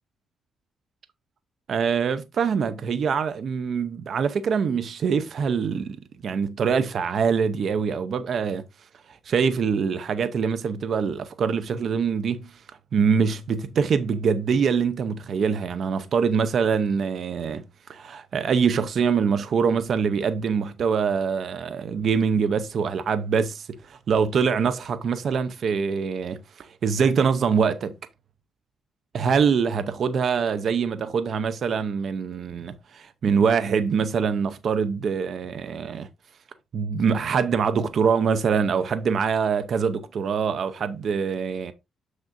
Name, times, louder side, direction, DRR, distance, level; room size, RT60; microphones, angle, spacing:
voice 1, 1.7-6.0 6.2-8.6 9.1-12.6 12.9-17.6 17.9-27.9 29.1-36.1 36.7-41.7, right 6 dB, 55° right, 0.7 m, -24 dB
7.0 x 6.4 x 2.5 m
cardioid pair, 90°, 0 cm